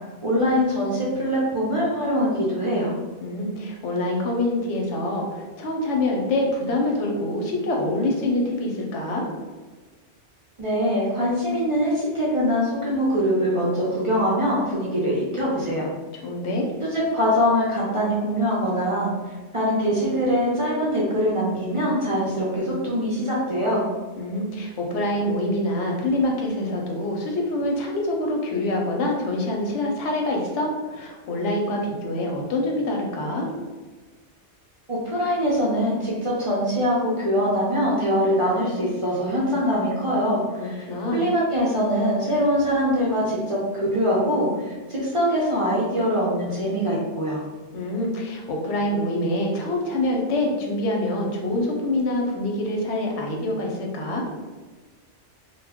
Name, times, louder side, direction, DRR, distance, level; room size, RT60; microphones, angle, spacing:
voice 1, 0.2-2.9 10.6-15.9 16.9-19.1 19.5-23.8 34.9-47.4, equal, 50° right, -6 dB, 0.3 m, -23 dB
voice 2, 3.2-9.2 16.2-16.7 24.2-33.5 40.6-41.2 47.7-54.2, left 1 dB, 85° left, 0 dB, 0.9 m, -25 dB
2.1 x 2.1 x 3.4 m, 1.3 s
omnidirectional pair, 1.2 m